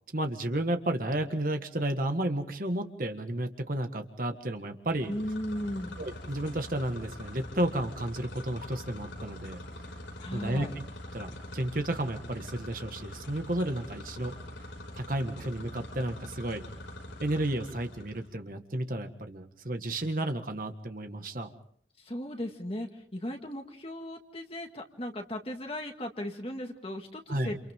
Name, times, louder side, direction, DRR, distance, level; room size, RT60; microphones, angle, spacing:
voice 1, 0.1-5.1 6.0-9.6 10.3-10.7 11.1-14.4 14.9-16.6 17.2-21.5 27.3-27.6, right 1 dB, 50° right, 5 dB, 1.6 m, -32 dB
sound 1, 4.9-18.3, left 1 dB, 90° left, 5.7 m, -44 dB
voice 2, 5.1-6.0 10.2-10.7 22.0-27.7, left 1 dB, 30° left, 3 dB, 2.0 m, -37 dB
29.5 x 28.5 x 3.7 m, 0.62 s
head